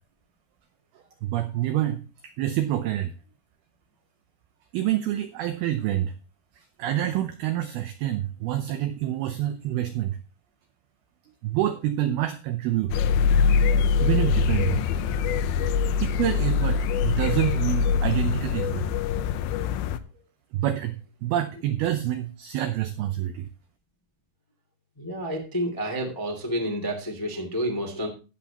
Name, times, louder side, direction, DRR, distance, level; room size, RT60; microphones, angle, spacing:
voice 1, 1.2-3.1 4.7-6.1 6.6-10.2 11.4-12.9 14.0-14.9 16.0-18.9 20.5-20.9 21.2-23.5, right 13 dB, 90° right, 9 dB, 2.1 m, -27 dB
sound 1, 12.9-20.0, left 6 dB, 80° left, 2.9 m, -23 dB
voice 2, 25.0-28.1, equal, 25° left, 2 dB, 0.4 m, -29 dB
18.0 x 7.1 x 2.9 m, 0.33 s
omnidirectional pair, 5.3 m